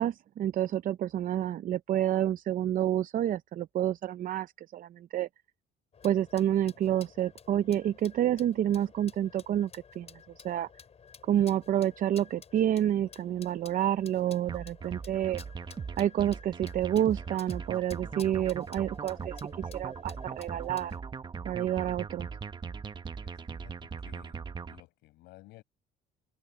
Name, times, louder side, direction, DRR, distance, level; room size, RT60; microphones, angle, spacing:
voice 1, 0.0-5.3 6.0-10.1 10.4-10.7 11.2-15.4 16.0-19.4 19.7-20.9 21.4-22.3, right 11 dB, 55° right, 0.6 m, -29 dB
sound 1, 5.9-21.0, left 6 dB, 40° left, 6.9 m, -53 dB
sound 2, 14.5-24.8, right 5 dB, 25° right, 0.9 m, -40 dB
voice 2, 23.2-24.4 24.6-25.6, left 19 dB, 90° left, 7.0 m, -55 dB
cardioid pair, 110°, 17 cm